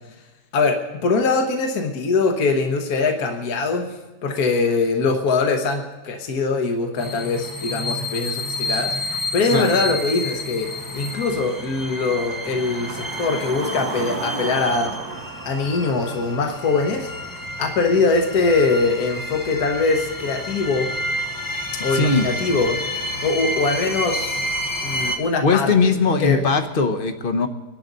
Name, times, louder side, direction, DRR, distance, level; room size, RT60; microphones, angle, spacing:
voice 1, 1.0-3.9 4.2-10.7 10.9-14.9 15.4-17.1 17.3-20.9 21.8-22.8 23.2-24.4 24.8-25.9 26.2-26.4, left 3 dB, 60° left, 3 dB, 1.6 m, -22 dB
sound 1, 7.0-25.2, left 1 dB, 20° left, 0.6 m, -30 dB
sound 2, 10.6-17.5, right 4 dB, 70° right, 1.8 m, -35 dB
voice 2, 21.9-22.3 25.4-27.5, left 4 dB, 40° left, 7 dB, 1.0 m, -19 dB
25.0 x 11.0 x 4.0 m, 1.1 s
omnidirectional pair, 1.8 m